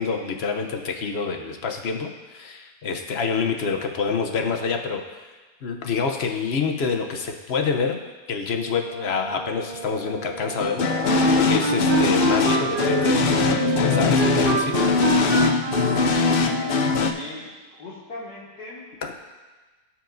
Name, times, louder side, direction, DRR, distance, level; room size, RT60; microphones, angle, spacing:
voice 1, 0.0-5.3 5.6-8.0 8.3-15.2 19.0-19.1, left 5 dB, 50° left, 4 dB, 0.9 m, -27 dB
Brass instrument, 8.9-13.0, right 4 dB, 35° right, 0.7 m, -39 dB
sound 1, 10.6-17.1, left 4 dB, 65° left, 0.5 m, -21 dB
Wind instrument woodwind instrument, 11.0-17.0, right 4 dB, 85° right, 1.6 m, -27 dB
voice 2, 17.0-19.0, left 2 dB, 90° left, -5 dB, 2.5 m, -39 dB
17.5 x 5.9 x 2.6 m, 1.3 s
omnidirectional pair, 1.7 m